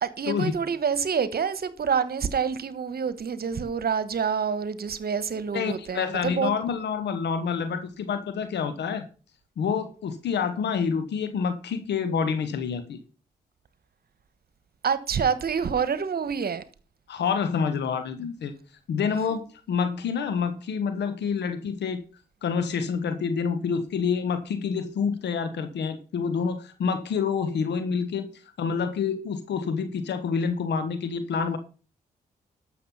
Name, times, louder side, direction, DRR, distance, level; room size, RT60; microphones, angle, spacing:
voice 1, 0.0-6.5 14.8-16.6, right 6 dB, 60° right, 1.2 m, -27 dB
voice 2, 5.5-9.0 9.6-13.0 17.1-18.5 18.9-22.0 22.4-28.3 28.6-31.6, left 6 dB, 75° left, 1.3 m, -27 dB
12.0 x 6.7 x 5.5 m
supercardioid pair, 40°, 18 cm